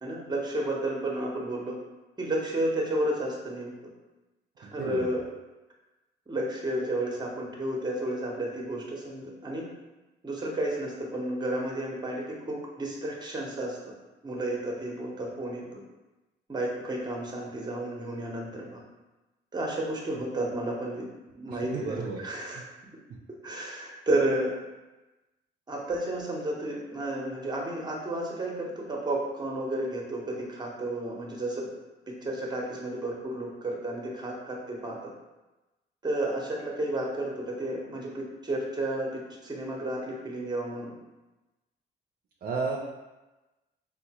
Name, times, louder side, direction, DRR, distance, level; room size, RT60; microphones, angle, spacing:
voice 1, 0.0-1.8 2.2-3.7 4.6-5.2 6.3-9.7 10.2-13.8 14.2-15.8 16.5-18.8 19.5-21.1 21.3-21.7 22.2-22.6 23.4-24.5 25.7-31.7 32.2-35.0 36.0-40.9, right 1 dB, 20° right, -1 dB, 0.8 m, -32 dB
voice 2, 4.6-5.0 21.5-22.2 42.4-42.8, right 4 dB, 50° right, -2 dB, 0.4 m, -32 dB
3.6 x 2.1 x 2.9 m, 1.1 s
cardioid pair, 90°, 20 cm